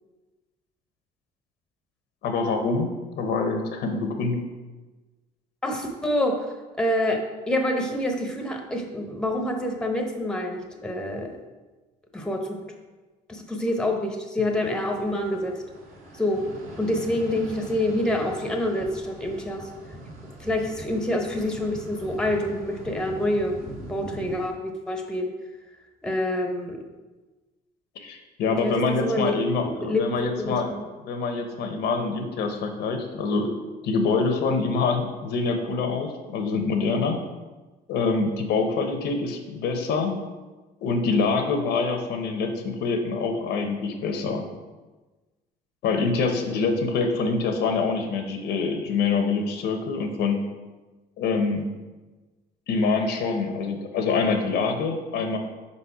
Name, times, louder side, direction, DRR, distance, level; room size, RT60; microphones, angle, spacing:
voice 1, 2.2-2.9 3.2-4.5 28.0-30.7 31.0-33.5 33.8-37.2 37.9-40.2 40.8-44.5 45.8-50.4 51.2-51.8 52.7-55.4, left 4 dB, 80° left, 5 dB, 0.8 m, -25 dB
voice 2, 5.6-11.3 12.1-12.6 13.3-15.5 16.1-16.4 16.8-19.7 20.4-23.6 23.9-25.3 26.0-26.8 28.5-30.0 30.4-30.8, left 1 dB, 5° left, 3 dB, 0.8 m, -27 dB
sound 1, 14.4-24.5, right 1 dB, 55° right, 2.0 m, -42 dB
5.2 x 4.2 x 4.7 m, 1.2 s
cardioid pair, 110°, 17 cm